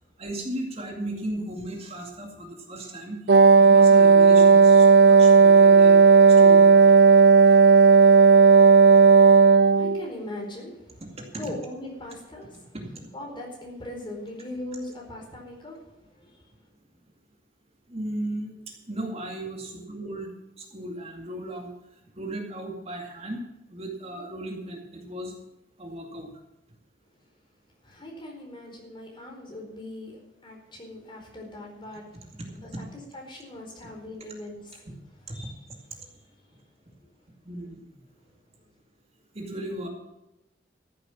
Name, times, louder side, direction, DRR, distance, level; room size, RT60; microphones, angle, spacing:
voice 1, 0.2-3.2 3.6-6.8 11.0-11.1 11.4-11.5 12.7-13.1 17.9-20.3 20.6-21.7 22.2-23.4 23.7-25.3 25.8-26.3 32.4-32.5 35.3-35.4 37.4-37.8 39.3-39.9, right 1 dB, 35° right, 1 dB, 2.3 m, -36 dB
Wind instrument woodwind instrument, 3.3-10.0, right 5 dB, 65° right, 0.4 m, -14 dB
voice 2, 9.7-11.0 11.3-12.7 13.1-15.8 16.2-16.3 27.8-32.3 32.8-32.9 33.1-34.8 35.3-35.5, left 1 dB, 30° left, 0 dB, 4.4 m, -39 dB
14.0 x 8.0 x 7.4 m, 0.93 s
head